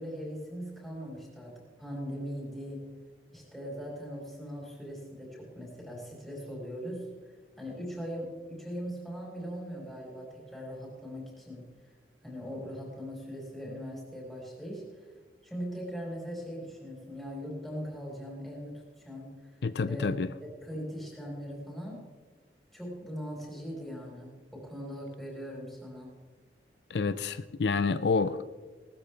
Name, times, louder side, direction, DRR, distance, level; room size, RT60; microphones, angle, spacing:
voice 1, 0.0-2.9 3.3-7.1 7.6-11.7 12.2-15.1 15.4-19.5 19.9-20.2 20.4-22.0 22.7-26.2, equal, ahead, -4 dB, 4.6 m, -40 dB
voice 2, 19.6-20.3 26.9-28.5, left 4 dB, 70° left, 13 dB, 0.5 m, -28 dB
19.0 x 13.5 x 3.4 m, 1.4 s
head